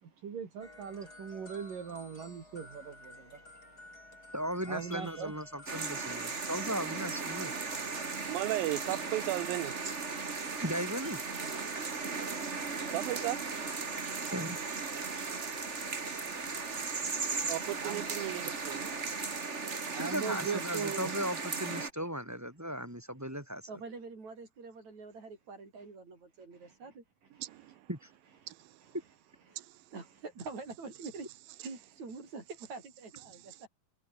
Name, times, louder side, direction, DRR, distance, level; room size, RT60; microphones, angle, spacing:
voice 1, 0.0-4.2 4.7-5.3 17.8-18.1 19.4-21.1 26.6-26.7 27.5-27.8 29.5-29.6, right 6 dB, 70° right, 5.2 m, -42 dB
sound 1, 0.6-19.4, left 2 dB, 25° left, 8.1 m, -53 dB
voice 2, 4.3-7.5 10.6-11.2 14.3-14.6 20.0-23.6 27.9-28.1, equal, 5° right, 3.1 m, -37 dB
sound 2, 5.7-21.9, right 4 dB, 30° right, 1.5 m, -37 dB
voice 3, 8.3-9.7 12.9-13.5 17.5-19.0 27.4-27.8 28.5-28.7 29.6-29.7, right 17 dB, 85° right, 2.7 m, -35 dB
voice 4, 23.7-27.0 29.5-31.3 31.6-33.7, right 4 dB, 50° right, 7.4 m, -46 dB
omnidirectional pair, 4.1 m